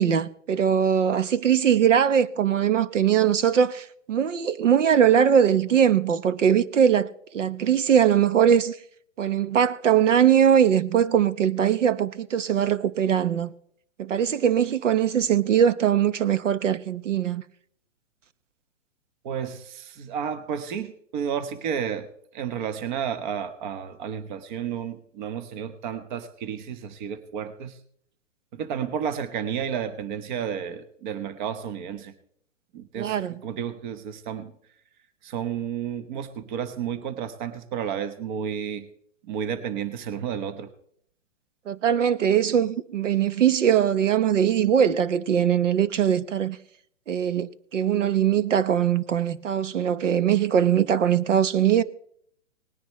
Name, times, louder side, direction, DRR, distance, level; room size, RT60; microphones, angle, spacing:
voice 1, 0.0-8.8 9.2-13.5 14.0-17.4 33.0-33.4 41.7-46.6 47.1-51.8, right 9 dB, 75° right, 1.1 m, -21 dB
voice 2, 19.2-22.1 22.3-27.7 28.5-32.1 32.7-33.2 33.4-34.5 35.2-38.9 39.3-40.7, right 8 dB, 40° right, 1.3 m, -31 dB
19.5 x 10.0 x 3.2 m
hypercardioid pair, 140°, 37 cm